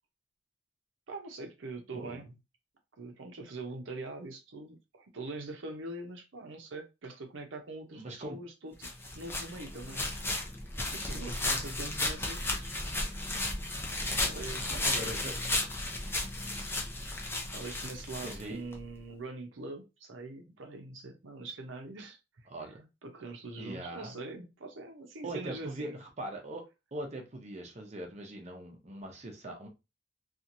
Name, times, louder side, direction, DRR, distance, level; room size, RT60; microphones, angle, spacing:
voice 1, 1.1-2.3 3.0-10.4 10.9-12.8 14.2-15.2 17.5-22.7 23.0-26.0, right 2 dB, 85° right, 0.7 m, -43 dB
voice 2, 7.9-8.4 14.4-14.5 14.8-15.3 18.2-18.6 22.5-22.8 23.6-24.1 25.2-26.7 26.9-29.7, right 1 dB, 40° right, 0.7 m, -41 dB
sound 1, 8.8-18.8, left 2 dB, 15° left, 0.5 m, -34 dB
2.9 x 2.5 x 2.5 m
head